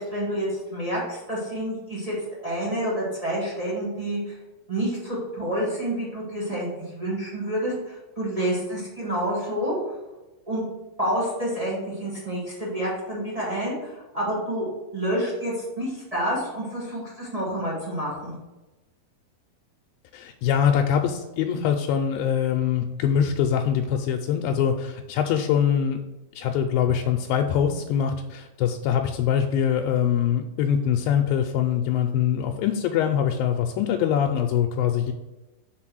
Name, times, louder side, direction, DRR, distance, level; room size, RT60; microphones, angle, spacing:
voice 1, 0.0-2.2 2.4-4.3 4.7-6.7 6.9-9.8 10.5-10.6 11.0-14.7 14.9-18.3, right 1 dB, 40° right, -6 dB, 0.5 m, -28 dB
voice 2, 20.1-26.0 26.4-35.1, left 8 dB, 80° left, 4 dB, 2.3 m, -23 dB
5.9 x 4.2 x 6.2 m, 1.1 s
omnidirectional pair, 4.2 m